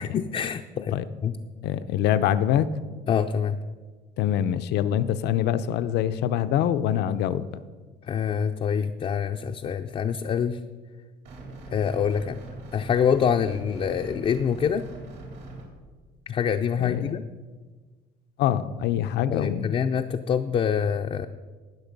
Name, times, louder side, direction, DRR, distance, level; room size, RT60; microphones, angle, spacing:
voice 1, 0.0-1.0 1.2-1.4 3.1-3.6 8.1-10.6 11.7-12.4 12.7-14.9 16.3-17.3 19.3-21.3, left 7 dB, 35° left, 5 dB, 0.5 m, -25 dB
voice 2, 1.6-2.7 4.2-7.4 16.8-17.1 18.4-19.7, left 10 dB, 75° left, 13 dB, 0.7 m, -24 dB
sound 1, 11.2-15.6, right 2 dB, 70° right, 4.2 m, -41 dB
18.5 x 6.7 x 5.3 m, 1.4 s
cardioid pair, 125°, 18 cm